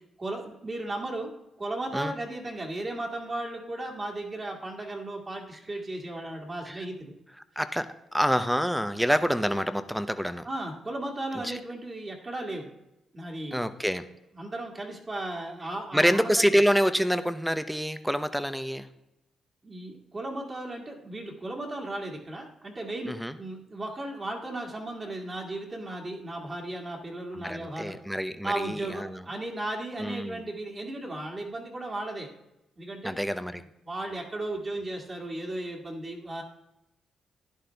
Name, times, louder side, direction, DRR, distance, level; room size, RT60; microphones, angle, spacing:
voice 1, 0.2-1.3 1.6-7.1 10.4-12.7 13.1-13.7 14.3-16.6 19.6-28.0 28.4-32.3 32.8-33.2 33.8-36.4, right 2 dB, 30° right, 0 dB, 2.1 m, -35 dB
voice 2, 7.6-10.5 11.4-11.6 13.5-14.1 15.9-18.9 23.0-23.4 27.3-29.2 30.0-30.4 33.0-33.6, equal, ahead, 12 dB, 0.7 m, -27 dB
11.5 x 10.5 x 3.4 m, 0.91 s
cardioid pair, 100°, 0 cm